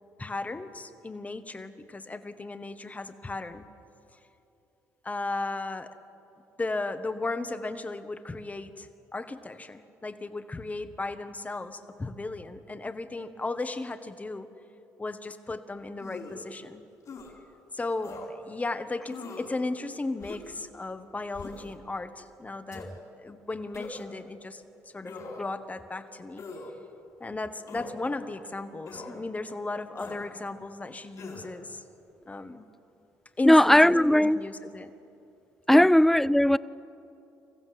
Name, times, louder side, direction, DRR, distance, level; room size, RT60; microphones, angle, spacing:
voice 1, 0.2-3.7 5.0-5.9 6.6-14.5 15.0-16.8 17.7-22.9 23.2-24.6 24.9-26.5 27.2-31.8 32.3-32.7 33.4-34.9 35.7-35.9, left 2 dB, 20° left, 1.4 m, -35 dB
sound 1, 16.0-16.5 17.1-17.3 18.0-18.3 19.1-19.5 20.2-20.6 21.3-21.7 22.7-22.9 23.7-24.1 25.0-25.5 26.4-26.7 27.7-28.0 28.9-29.1 30.0-30.3 31.2-31.5, left 3 dB, 55° left, 4.7 m, -42 dB
voice 2, 33.5-34.4 35.7-36.6, left 1 dB, 5° left, 0.5 m, -18 dB
24.0 x 15.0 x 7.7 m
supercardioid pair, 65°, 7 cm